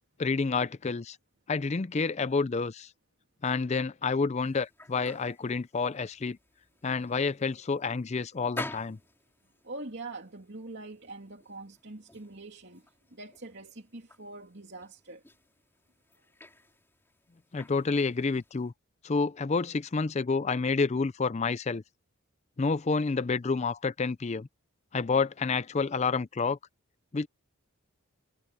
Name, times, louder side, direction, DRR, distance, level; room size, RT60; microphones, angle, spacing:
voice 1, 0.2-1.2 1.5-2.9 3.4-6.4 6.8-9.0 17.5-18.7 19.0-21.8 22.6-24.5 24.9-26.6 27.1-27.3, left 4 dB, 30° left, 0.4 m, -29 dB
sound 1, 4.4-18.7, left 2 dB, 10° left, 5.3 m, -49 dB
voice 2, 9.6-12.9 13.1-15.2, right 2 dB, 50° right, 2.9 m, -44 dB
head